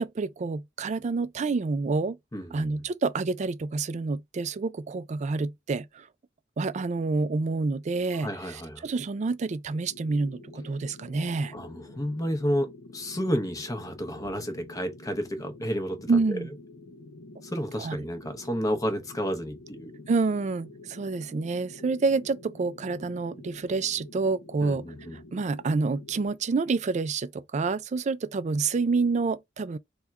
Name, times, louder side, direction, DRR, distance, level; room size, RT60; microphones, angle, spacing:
voice 1, 0.0-2.2 2.5-6.1 6.6-11.5 16.1-16.5 17.8-18.0 20.1-24.8 25.3-29.8, right 4 dB, 40° right, 0.4 m, -28 dB
voice 2, 2.3-2.8 8.2-8.9 11.5-16.4 17.4-19.9 24.6-25.2, equal, 20° left, 0.8 m, -31 dB
sound 1, 9.9-26.3, left 2 dB, 65° left, 0.8 m, -48 dB
3.5 x 2.3 x 4.1 m
head